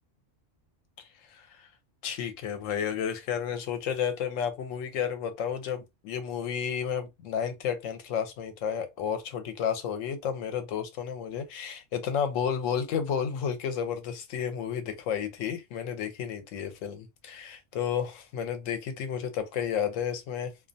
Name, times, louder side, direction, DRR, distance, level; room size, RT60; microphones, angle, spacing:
voice 1, 1.0-1.6 2.0-20.5, left 8 dB, 85° left, 1.0 m, -32 dB
2.4 x 2.2 x 2.5 m
omnidirectional pair, 1.3 m